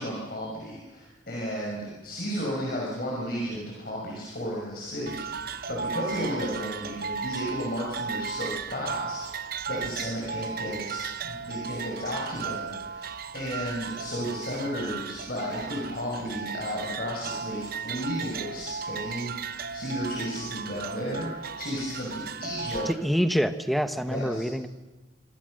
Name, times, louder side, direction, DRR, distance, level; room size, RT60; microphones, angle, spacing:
voice 1, 0.0-22.9 24.0-24.4, equal, 50° left, -3 dB, 6.2 m, -33 dB
sound 1, 5.1-22.9, right 5 dB, 50° right, 0.8 m, -36 dB
voice 2, 22.9-24.7, equal, ahead, 8 dB, 1.1 m, -26 dB
26.0 x 25.5 x 6.6 m, 1.2 s
head